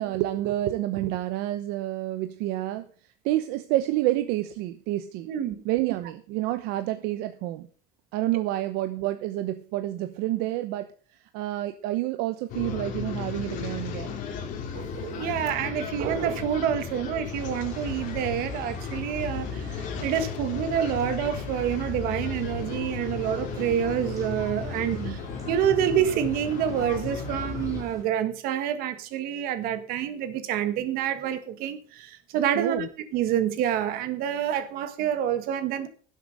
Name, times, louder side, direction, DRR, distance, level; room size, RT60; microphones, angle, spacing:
voice 1, 0.0-2.9 3.2-5.3 5.6-7.7 8.1-10.9 11.3-14.2 24.9-25.2 32.5-32.9, right 15 dB, 85° right, 0.9 m, -28 dB
voice 2, 5.3-5.6 8.3-8.4 14.7-25.2 25.5-32.9 33.1-35.9, right 9 dB, 65° right, 1.7 m, -27 dB
sound 1, 12.5-27.8, left 6 dB, 50° left, 2.7 m, -35 dB
sound 2, 17.3-28.0, right 1 dB, 20° right, 2.8 m, -45 dB
11.5 x 7.8 x 6.5 m
cardioid pair, 160°, 16 cm